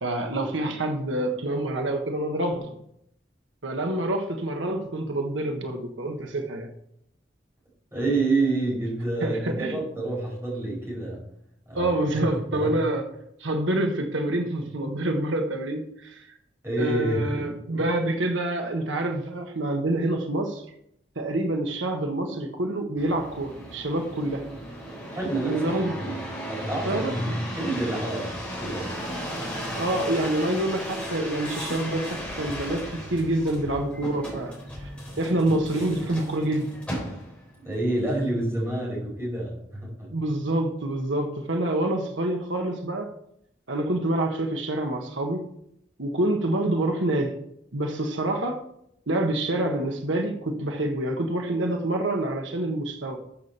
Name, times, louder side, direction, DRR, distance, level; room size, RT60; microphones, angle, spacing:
voice 1, 0.0-2.7 3.6-6.7 9.2-9.8 11.7-13.1 13.4-16.3 16.8-20.6 21.1-24.5 25.4-25.9 26.8-27.4 29.7-34.9 35.2-36.7 40.1-43.1 43.7-45.5 46.0-47.4 47.7-48.6 49.1-53.2, right 1 dB, 85° right, 1.4 m, -27 dB
voice 2, 7.9-11.2 11.7-12.2 12.5-12.8 16.6-17.3 25.1-25.6 26.0-26.2 26.5-28.9 37.6-40.1, right 2 dB, 15° right, 5.2 m, -28 dB
sound 1, 23.0-37.5 38.1-38.6, equal, 5° left, 4.1 m, -35 dB
13.5 x 7.0 x 4.4 m
head